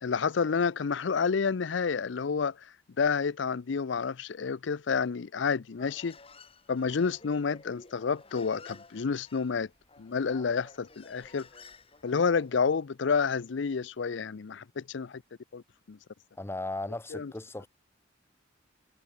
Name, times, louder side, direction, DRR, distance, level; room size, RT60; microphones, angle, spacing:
voice 1, 0.0-2.5 3.0-6.2 6.7-9.7 10.0-11.5 12.0-15.2 15.5-15.6 15.9-16.0 17.1-17.3, left 5 dB, 70° left, 0.5 m, -29 dB
Human voice, 5.7-12.8, left 3 dB, 30° left, 3.6 m, -53 dB
voice 2, 16.4-17.7, left 2 dB, 15° left, 0.6 m, -36 dB
head